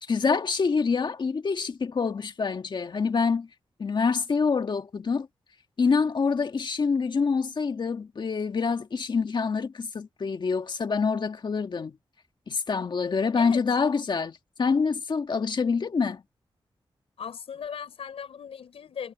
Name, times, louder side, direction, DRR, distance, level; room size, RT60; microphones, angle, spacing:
voice 1, 0.1-3.5 3.8-5.3 5.8-12.0 12.5-16.2, left 5 dB, 50° left, 1.8 m, -26 dB
voice 2, 17.2-19.1, left 7 dB, 85° left, 5.3 m, -38 dB
wide cardioid pair, 90°, 10 cm